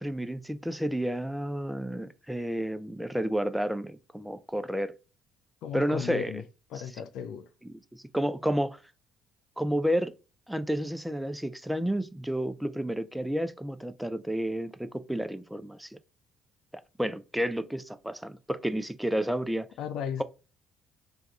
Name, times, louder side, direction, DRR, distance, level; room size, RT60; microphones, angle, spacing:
voice 1, 0.0-4.9 5.7-6.4 7.7-7.8 8.1-8.8 9.6-10.1 10.5-16.0 17.0-19.7, equal, 5° right, 0.4 m, -31 dB
voice 2, 5.6-6.4 6.7-7.5 19.8-20.2, left 8 dB, 60° left, 0.4 m, -35 dB
3.5 x 2.3 x 4.0 m
figure-of-eight pair, 50°, 0 cm